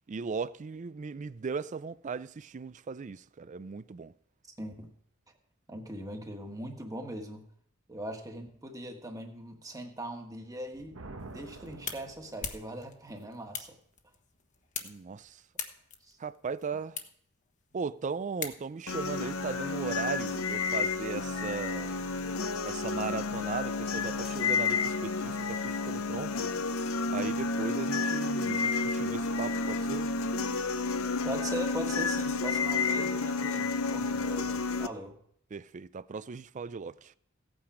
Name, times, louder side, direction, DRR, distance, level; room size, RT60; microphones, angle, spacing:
voice 1, 0.1-4.1 14.8-15.4 16.2-17.0 17.7-22.0 22.6-26.5 27.1-30.1 35.5-37.1, right 5 dB, 35° right, 0.4 m, -37 dB
voice 2, 4.6-4.9 5.7-7.4 7.9-11.0 11.3-13.8 16.0-16.2 31.2-35.2, right 1 dB, 15° right, 1.5 m, -40 dB
Thunder, 10.6-12.9, right 2 dB, 70° right, 1.2 m, -48 dB
sound 1, 11.2-19.0, left 7 dB, 35° left, 1.1 m, -44 dB
sound 2, 18.9-34.9, left 4 dB, 75° left, 0.7 m, -31 dB
16.0 x 8.8 x 5.0 m
head